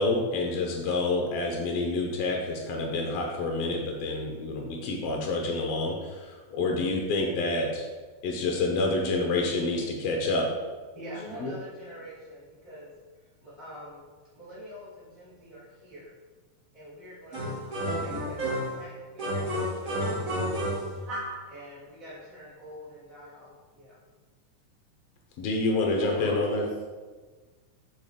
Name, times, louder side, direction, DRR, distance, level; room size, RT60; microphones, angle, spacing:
voice 1, 0.0-7.9 8.2-10.5 11.4-11.5 25.4-26.7, left 2 dB, 80° left, 1 dB, 1.4 m, -28 dB
voice 2, 10.9-12.9 13.4-14.1 14.3-16.1 16.7-18.4 18.7-24.0, equal, 15° left, -10 dB, 1.5 m, -46 dB
sound 1, 17.3-18.8 19.2-21.4, equal, 40° right, 1.3 m, -31 dB
voice 3, 25.9-26.8, equal, 50° left, -9 dB, 0.7 m, -40 dB
5.6 x 4.6 x 5.0 m, 1.4 s
omnidirectional pair, 3.7 m